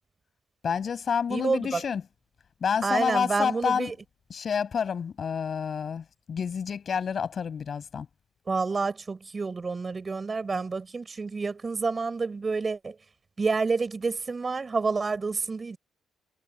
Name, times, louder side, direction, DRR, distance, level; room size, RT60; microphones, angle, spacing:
voice 1, 0.6-2.0 2.6-3.9 4.3-8.1, left 7 dB, 50° left, 7.5 m, -29 dB
voice 2, 1.3-1.8 2.8-3.9 8.5-13.0 13.4-15.8, right 4 dB, 30° right, 7.2 m, -29 dB
cardioid pair, 90°, 0 cm